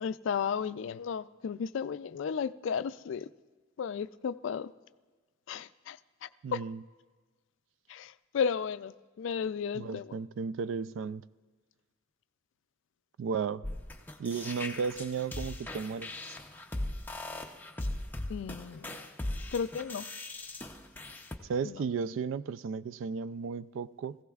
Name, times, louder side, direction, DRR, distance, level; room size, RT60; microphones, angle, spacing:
voice 1, 0.0-3.3 3.8-4.7 5.5-6.6 7.9-10.2 18.3-19.0 19.5-20.1 21.6-21.8, left 6 dB, 65° left, 0.3 m, -34 dB
voice 2, 6.4-6.8 9.7-11.2 13.2-13.6 14.2-16.1 21.5-24.2, right 5 dB, 70° right, 0.3 m, -34 dB
sound 1, 13.6-21.4, left 1 dB, 10° left, 0.5 m, -39 dB
17.5 x 16.0 x 2.4 m
head